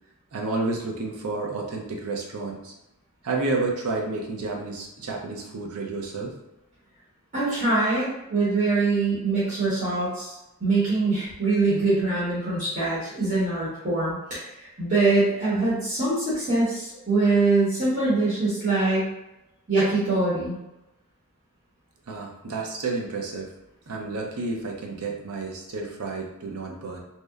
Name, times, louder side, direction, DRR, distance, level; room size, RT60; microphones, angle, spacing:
voice 1, 0.3-2.7 3.2-6.3 22.1-23.5 23.9-27.0, right 3 dB, 85° right, 0 dB, 0.5 m, -30 dB
voice 2, 7.3-10.3 10.6-19.0 19.7-20.6, right 3 dB, 35° right, -10 dB, 0.9 m, -23 dB
2.8 x 2.1 x 2.3 m, 0.92 s
head